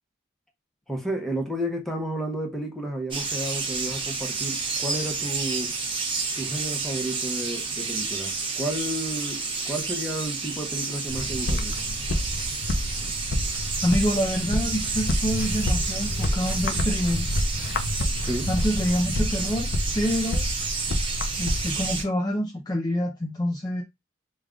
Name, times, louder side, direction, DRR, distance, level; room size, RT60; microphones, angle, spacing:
voice 1, 0.9-5.7 6.4-11.7 18.2-18.5, right 1 dB, ahead, 0.8 m, -32 dB
sound 1, 3.1-22.0, right 4 dB, 25° right, 0.9 m, -31 dB
sound 2, 11.1-22.0, left 1 dB, 70° left, 0.6 m, -28 dB
voice 2, 13.8-17.4 18.5-20.5 21.4-23.8, equal, 20° left, 0.4 m, -27 dB
3.3 x 2.3 x 3.7 m
head